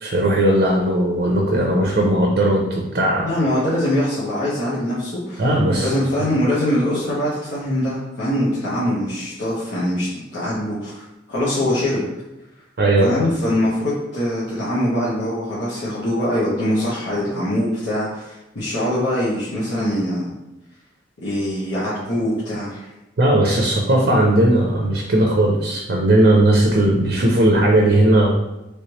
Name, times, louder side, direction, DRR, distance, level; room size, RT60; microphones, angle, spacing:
voice 1, 0.0-3.3 5.4-5.9 12.8-13.1 23.2-28.3, right 1 dB, 55° right, 0 dB, 0.5 m, -17 dB
voice 2, 3.2-5.5 5.8-11.0 11.3-12.0 13.0-20.3 21.2-22.9, left 1 dB, 90° left, -10 dB, 1.0 m, -23 dB
3.2 x 3.1 x 2.9 m, 0.96 s
head